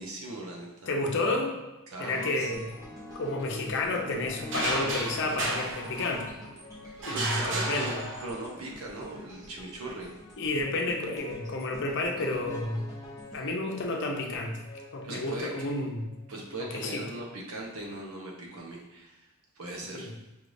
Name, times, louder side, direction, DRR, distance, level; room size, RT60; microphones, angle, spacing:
voice 1, 0.0-0.9 1.9-2.5 6.9-10.2 15.0-15.7 16.3-19.3 19.6-20.1, right 2 dB, 85° right, -1 dB, 1.0 m, -39 dB
voice 2, 0.9-1.5 2.0-2.6 3.1-6.3 7.1-8.0 10.4-12.8 13.3-14.6 14.9-16.1 16.6-17.0 19.9-20.1, left 2 dB, 60° left, 1 dB, 0.7 m, -31 dB
sound 1, 2.0-8.7 9.8-17.1, left 2 dB, 15° left, 0.6 m, -48 dB
sound 2, 2.5-14.7 15.1-15.3, equal, 15° right, 1.0 m, -50 dB
sound 3, 4.5-6.5 7.0-8.6, right 2 dB, 60° right, 0.7 m, -33 dB
5.4 x 3.2 x 2.6 m, 1.0 s
head